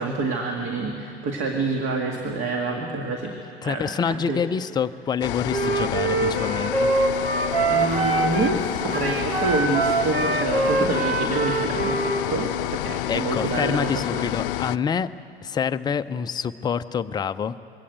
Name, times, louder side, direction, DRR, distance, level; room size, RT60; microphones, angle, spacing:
voice 1, 0.0-3.3 3.6-4.4 7.6-14.3, right 3 dB, 40° right, 2 dB, 2.1 m, -27 dB
voice 2, 3.6-6.9 13.1-15.1 15.4-17.5, left 7 dB, 15° left, 11 dB, 0.5 m, -27 dB
sound 1, 5.2-14.8, left 14 dB, 60° left, 0.6 m, -29 dB
Wind instrument woodwind instrument, 5.5-8.6 8.9-12.3, right 3 dB, 65° right, 2.0 m, -24 dB
22.0 x 17.0 x 9.1 m, 2.6 s
figure-of-eight pair, 85°, 31 cm